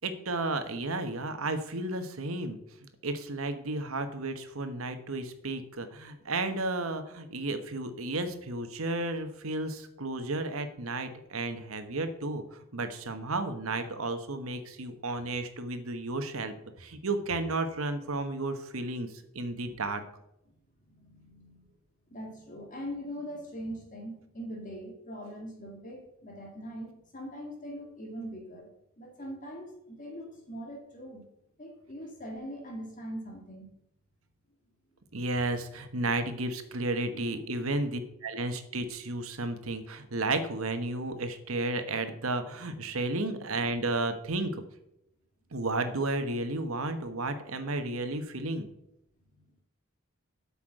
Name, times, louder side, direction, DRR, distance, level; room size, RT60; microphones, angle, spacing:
voice 1, 0.0-20.0 35.1-44.6 45.5-48.7, right 2 dB, 85° right, 8 dB, 1.3 m, -33 dB
voice 2, 20.9-21.7 22.1-28.7 29.0-31.2 31.6-33.7 37.0-37.8 49.3-49.4, equal, 40° left, 1 dB, 2.1 m, -42 dB
8.4 x 5.9 x 7.6 m, 0.81 s
head